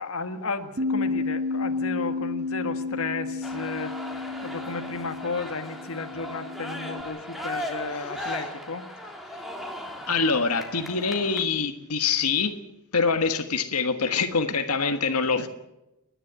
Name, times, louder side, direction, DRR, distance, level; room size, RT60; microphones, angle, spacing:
voice 1, 0.0-4.0 4.4-8.9 14.8-15.0 15.4-15.5, left 4 dB, 65° left, 6 dB, 1.6 m, -33 dB
Bass guitar, 0.8-7.0, left 3 dB, 50° right, 1.2 m, -31 dB
sound 1, 3.4-11.4, left 1 dB, ahead, 3.1 m, -37 dB
voice 2, 7.9-8.3 10.1-12.6 12.9-15.5, left 5 dB, 85° left, 6 dB, 1.5 m, -25 dB
30.0 x 11.0 x 8.7 m, 0.95 s
head